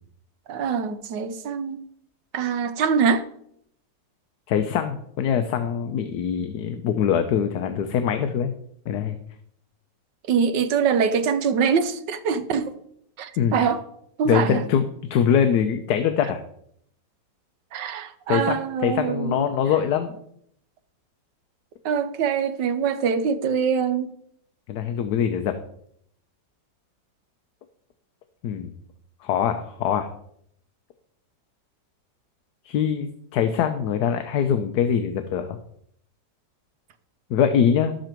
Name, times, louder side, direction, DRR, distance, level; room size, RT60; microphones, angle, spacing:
voice 1, 0.5-1.8 2.3-3.2 10.3-12.7 13.2-13.8 14.2-14.6 17.7-19.4 21.8-24.1, right 6 dB, 80° right, 1.5 m, -24 dB
voice 2, 4.5-8.5 8.9-9.2 13.4-13.5 14.2-14.8 15.1-16.4 18.3-20.2 24.7-25.6 28.4-28.7 29.2-30.1 32.6-35.6 37.3-38.0, left 8 dB, 70° left, 1.2 m, -23 dB
11.5 x 7.7 x 4.5 m
omnidirectional pair, 1.9 m